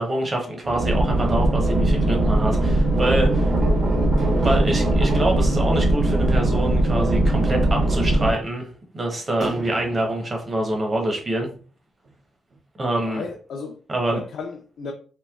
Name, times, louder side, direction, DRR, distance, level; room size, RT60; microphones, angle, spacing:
voice 1, 0.0-3.5 4.4-8.7 8.9-11.5 12.8-13.2 13.9-14.2, right 1 dB, 30° right, 0.8 m, -25 dB
sound 1, 0.6-8.3, right 1 dB, 55° right, 1.0 m, -20 dB
sound 2, 4.0-6.0 6.4-6.5 6.7-6.8 7.1-7.4 7.8-7.9 9.4-11.2 11.5-11.6 12.0-12.1 12.5-12.6, right 2 dB, 75° right, 1.3 m, -38 dB
voice 2, 12.8-13.8 14.1-14.9, left 4 dB, 70° left, 0.5 m, -34 dB
3.2 x 3.1 x 2.3 m
cardioid pair, 130°, 0 cm